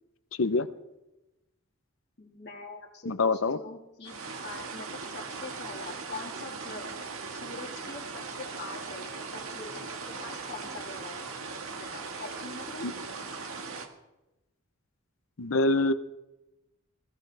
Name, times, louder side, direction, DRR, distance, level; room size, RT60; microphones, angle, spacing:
voice 1, 2.2-6.9 7.3-11.2 11.8-12.9, left 3 dB, 50° left, -3 dB, 2.0 m, -44 dB
voice 2, 3.1-3.6 12.8-12.9 15.4-15.9, left 3 dB, 65° left, 12 dB, 0.7 m, -25 dB
sound 1, 4.0-13.9, right 4 dB, 75° right, 1.7 m, -39 dB
20.5 x 15.5 x 3.4 m, 0.98 s
head